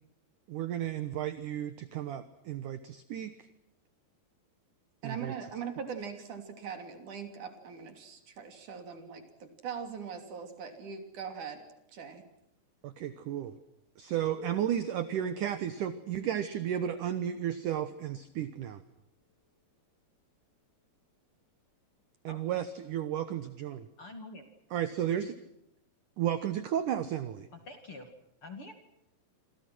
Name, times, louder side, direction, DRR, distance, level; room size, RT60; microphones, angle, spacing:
voice 1, 0.5-3.5 5.0-5.3 12.8-13.6 14.0-18.8 22.2-23.9 24.7-25.4 26.2-27.5, right 10 dB, 65° right, 11 dB, 2.2 m, -33 dB
voice 2, 5.0-11.7 11.9-12.2, right 6 dB, 50° right, 6 dB, 4.2 m, -41 dB
Piano, 14.4-19.7 20.6-20.7 21.2-21.3 22.0-22.1 23.2-23.3, left 6 dB, 70° left, 5.2 m, -54 dB
voice 3, 22.3-22.6 24.0-24.4 27.5-28.1 28.4-28.7, left 2 dB, 40° left, 6 dB, 2.7 m, -46 dB
27.5 x 27.0 x 6.2 m, 0.80 s
omnidirectional pair, 4.8 m